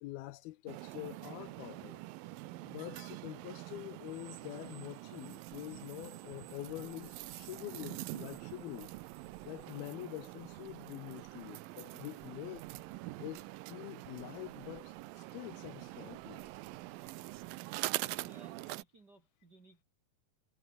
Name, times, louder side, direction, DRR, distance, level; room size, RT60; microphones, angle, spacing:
voice 1, 0.0-2.0 2.6-8.9 9.5-12.7 13.2-16.5, left 17 dB, 80° left, 2.4 m, -46 dB
sound 1, 0.7-18.8, right 19 dB, 80° right, 2.1 m, -45 dB
sound 2, 5.5-17.6, right 7 dB, 45° right, 2.9 m, -65 dB
voice 2, 18.0-19.8, right 2 dB, 25° right, 3.0 m, -60 dB
omnidirectional pair, 4.7 m